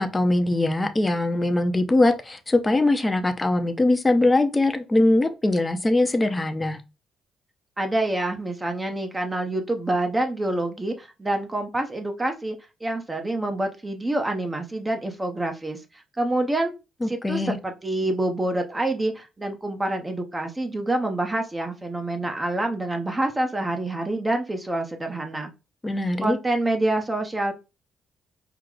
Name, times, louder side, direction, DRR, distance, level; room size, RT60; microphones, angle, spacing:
voice 1, 0.0-6.8 17.0-17.6 25.8-26.4, left 2 dB, 20° left, 0.6 m, -22 dB
voice 2, 7.8-12.6 12.8-15.8 16.2-16.7 17.1-25.5 26.2-27.5, right 1 dB, 20° right, 0.7 m, -27 dB
4.7 x 2.1 x 3.7 m
cardioid pair, 90°, 0 cm